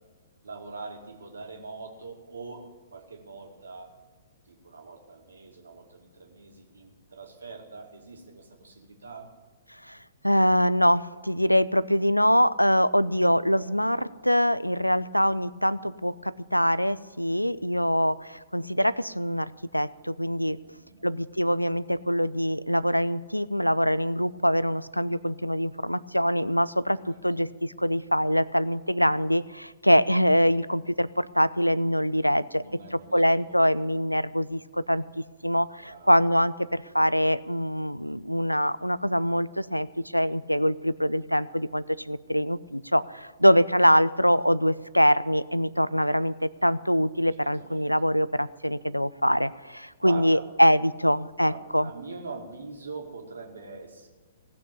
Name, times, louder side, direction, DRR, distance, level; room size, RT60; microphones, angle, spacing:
voice 1, 0.4-2.6 2.9-3.9 4.5-9.3 20.6-21.1 27.0-27.2 32.5-33.2 33.5-33.6 35.8-36.2 47.4-48.1 50.0-50.4 51.4-54.1, right 4 dB, 65° right, 3 dB, 2.2 m, -43 dB
voice 2, 10.2-20.6 21.0-32.6 32.9-51.9, equal, 90° left, 19 dB, 0.4 m, -24 dB
17.5 x 6.6 x 8.6 m, 1.4 s
figure-of-eight pair, 115°, 0 cm